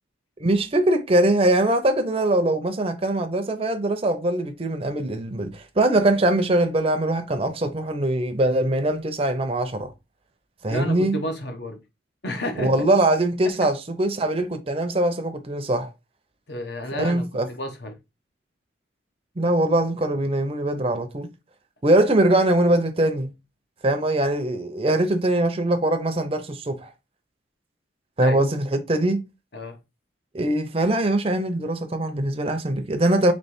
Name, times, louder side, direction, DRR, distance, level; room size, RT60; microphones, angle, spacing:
voice 1, 0.4-9.9 10.6-11.2 12.6-15.9 16.9-17.5 19.4-21.3 21.8-23.3 23.8-26.9 28.2-29.2 30.3-33.3, right 1 dB, 30° right, 0.6 m, -22 dB
voice 2, 10.7-11.8 12.2-12.9 13.4-13.7 16.5-18.0 28.2-28.4 29.5-29.8, left 1 dB, 60° left, 0.9 m, -32 dB
3.2 x 3.0 x 4.3 m
head